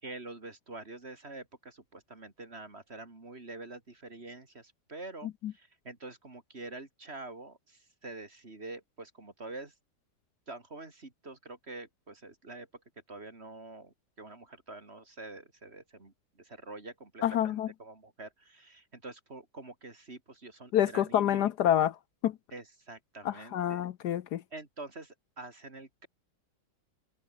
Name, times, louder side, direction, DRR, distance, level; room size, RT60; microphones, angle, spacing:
voice 1, 0.0-9.7 10.5-12.7 13.1-21.5 22.5-23.8 24.5-26.1, right 2 dB, 35° right, 3.3 m, -46 dB
voice 2, 17.2-17.7 20.7-21.9 22.2-22.3 23.2-24.4, left 11 dB, 70° left, 1.3 m, -27 dB
omnidirectional pair, 1.9 m